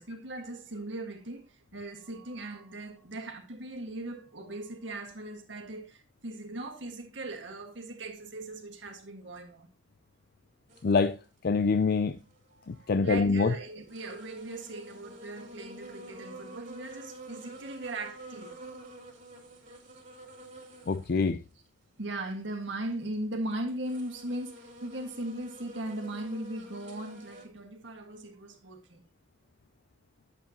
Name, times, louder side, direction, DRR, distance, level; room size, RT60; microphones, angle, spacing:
voice 1, 0.0-9.7 12.6-18.9 22.0-29.0, right 1 dB, 65° right, 1.8 m, -39 dB
sound 1, 10.7-11.1 12.7-12.8 13.4-13.5 13.9-21.2 21.5-21.6 22.2-23.1 23.7-27.5, right 1 dB, 40° right, 2.9 m, -48 dB
voice 2, 10.8-11.2 11.4-12.2 12.7-13.5 20.9-21.4, left 4 dB, 50° left, 0.4 m, -25 dB
10.5 x 8.0 x 2.9 m
head